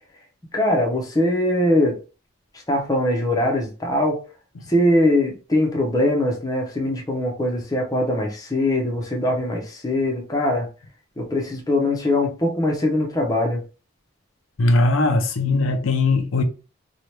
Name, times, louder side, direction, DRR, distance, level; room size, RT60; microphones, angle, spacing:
voice 1, 0.5-2.0 2.7-4.2 4.7-10.7 11.2-13.6, left 1 dB, 20° left, 0.7 m, -21 dB
voice 2, 14.6-16.4, left 2 dB, 85° left, 0.5 m, -19 dB
2.9 x 2.3 x 3.2 m
head